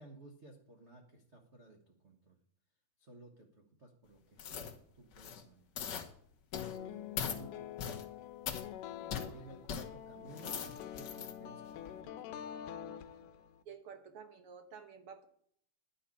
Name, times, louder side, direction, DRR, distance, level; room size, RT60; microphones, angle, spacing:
voice 1, 0.0-2.4 3.0-5.6 6.7-8.0 9.2-11.6 12.0-13.3, right 2 dB, 80° right, 2 dB, 0.6 m, -56 dB
sound 1, 4.4-4.7 5.1-5.4 5.8-6.1 6.5-6.8 7.2-7.4 7.8-8.0 8.5-8.6 9.1-9.3 9.7-9.8 10.3-11.3 11.8-11.9, left 7 dB, 60° left, 1.1 m, -40 dB
sound 2, 6.5-13.6, left 10 dB, 85° left, 2.2 m, -46 dB
voice 2, 6.6-6.9 9.0-9.4 13.6-15.3, right 6 dB, 60° right, 7 dB, 1.6 m, -52 dB
11.0 x 5.7 x 8.5 m, 0.64 s
omnidirectional pair, 3.6 m